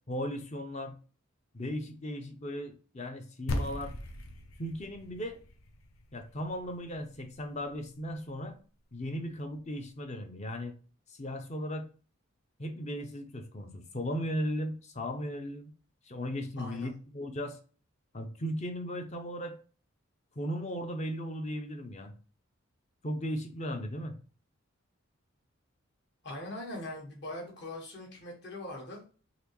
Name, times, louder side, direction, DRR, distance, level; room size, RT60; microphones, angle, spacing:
voice 1, 0.1-0.9 1.5-3.9 4.6-5.4 6.1-8.6 8.9-10.7 11.1-11.9 12.6-15.7 16.1-17.6 18.1-19.6 20.4-22.1 23.0-24.2, equal, 30° left, 6 dB, 0.6 m, -36 dB
sound 1, 3.5-8.0, left 1 dB, 80° left, 0.7 m, -39 dB
voice 2, 16.6-16.9 26.2-29.0, left 1 dB, 55° left, -1 dB, 1.5 m, -41 dB
4.1 x 2.9 x 3.0 m, 0.39 s
head